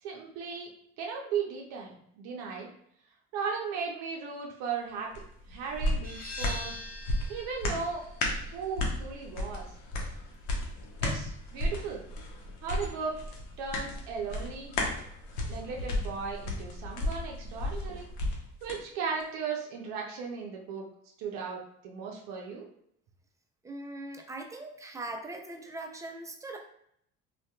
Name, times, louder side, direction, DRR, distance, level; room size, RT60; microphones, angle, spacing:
voice 1, 0.0-2.7 3.3-5.1 5.5-6.8 7.3-8.0 8.5-9.7 11.0-12.0 12.6-13.2 13.6-14.7 15.5-18.1 18.6-20.8 21.2-22.7, right 5 dB, 80° right, -1 dB, 0.6 m, -36 dB
sound 1, 5.1-18.8 19.2-19.3, left 1 dB, 80° left, 0.7 m, -34 dB
sound 2, 6.0-11.5, left 1 dB, 25° left, 0.8 m, -45 dB
voice 2, 23.6-26.6, right 2 dB, 10° right, 3 dB, 0.4 m, -40 dB
2.7 x 2.2 x 2.3 m, 0.70 s
hypercardioid pair, 65°, 34 cm